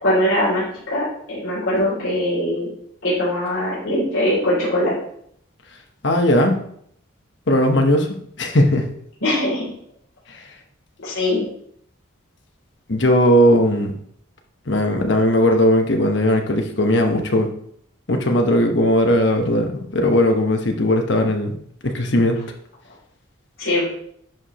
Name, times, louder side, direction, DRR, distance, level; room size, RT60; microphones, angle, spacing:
voice 1, 0.0-2.7 3.0-4.9 9.2-9.6 11.0-11.4 23.6-23.8, left 1 dB, 75° left, -8 dB, 3.1 m, -21 dB
voice 2, 6.0-6.6 7.5-8.1 8.4-8.9 12.9-13.9 14.7-17.5 18.1-21.5 21.8-22.4, left 1 dB, 55° left, 4 dB, 1.1 m, -17 dB
10.5 x 5.0 x 3.0 m, 0.67 s
head